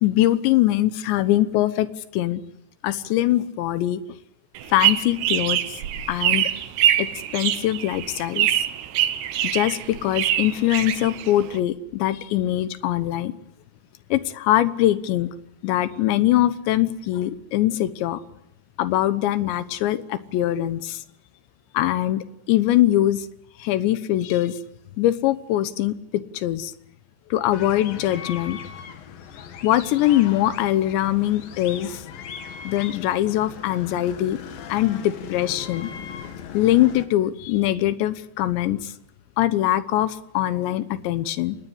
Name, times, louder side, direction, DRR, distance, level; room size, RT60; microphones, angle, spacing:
voice 1, 0.0-2.4 2.8-4.0 4.7-5.6 6.1-6.5 7.0-8.6 9.5-13.3 14.1-15.3 15.6-18.2 18.8-21.0 21.7-23.3 23.6-24.6 25.0-26.7 27.3-28.6 29.6-32.0 32.6-34.4 34.7-35.9 36.5-38.9 39.4-41.6, left 14 dB, 90° left, 13 dB, 3.4 m, -22 dB
sound 1, 4.5-11.6, right 12 dB, 80° right, 3.3 m, -24 dB
sound 2, 27.5-37.1, left 7 dB, 60° left, 3.2 m, -38 dB
24.5 x 19.5 x 9.7 m, 0.79 s
omnidirectional pair, 5.0 m